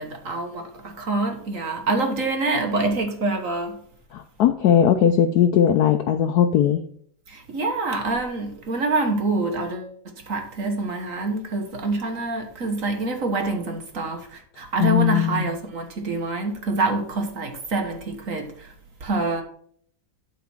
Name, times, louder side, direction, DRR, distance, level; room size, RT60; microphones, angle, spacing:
voice 1, 0.0-3.8 7.3-9.9 10.3-18.7 19.0-19.4, right 3 dB, 45° right, 1.5 m, -26 dB
voice 2, 4.1-6.8 14.8-15.5, left 9 dB, 70° left, 0.9 m, -19 dB
12.0 x 4.2 x 6.0 m
omnidirectional pair, 2.2 m